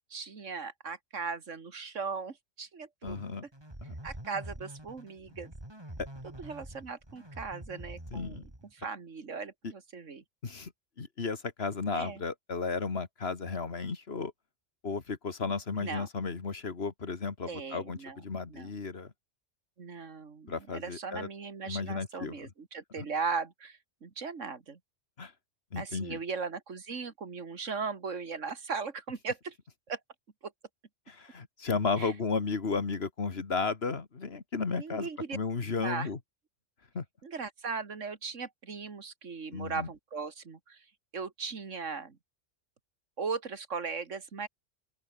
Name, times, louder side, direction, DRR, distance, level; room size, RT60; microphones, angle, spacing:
voice 1, 0.1-3.2 4.0-5.5 6.4-8.4 8.7-10.2 11.9-12.2 15.8-16.1 17.5-18.2 18.5-18.7 19.8-24.8 25.8-29.6 29.9-30.0 30.4-30.5 32.0-32.1 34.8-35.4 35.8-36.1 37.2-40.8 41.1-42.2 43.2-44.5, right 5 dB, 85° right, 2.3 m, -38 dB
voice 2, 3.0-3.4 3.9-4.0 8.1-8.4 9.6-9.7 10.4-10.7 11.0-14.3 14.8-19.1 20.5-21.3 21.7-22.5 23.0-23.1 25.2-25.3 25.7-26.2 31.1-36.2 36.9-37.1 39.5-39.9, left 4 dB, 55° left, 2.0 m, -34 dB
sound 1, 3.1-8.9, right 1 dB, 20° right, 4.5 m, -46 dB
open air
omnidirectional pair, 1.2 m